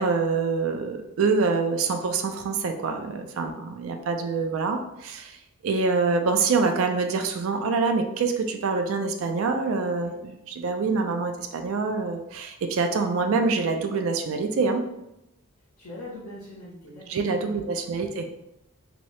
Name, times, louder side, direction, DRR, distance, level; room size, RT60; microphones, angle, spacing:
voice 1, 0.0-14.9 17.1-18.4, right 4 dB, 65° right, 5 dB, 0.4 m, -26 dB
voice 2, 15.8-18.1, left 1 dB, 85° left, -9 dB, 0.9 m, -43 dB
3.0 x 2.6 x 3.0 m, 0.87 s
head